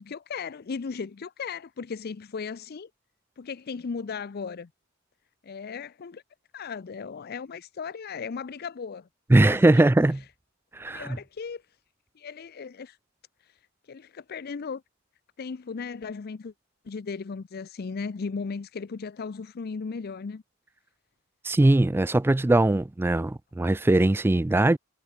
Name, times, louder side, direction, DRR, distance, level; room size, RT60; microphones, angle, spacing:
voice 1, 0.0-2.9 3.4-4.7 5.4-6.2 6.5-9.1 9.4-9.8 10.9-11.6 12.2-13.0 13.9-14.8 15.4-16.5 16.8-20.4, left 5 dB, 50° left, 0.5 m, -36 dB
voice 2, 9.3-10.2 10.8-11.1 21.4-24.8, right 2 dB, 10° right, 0.3 m, -20 dB
head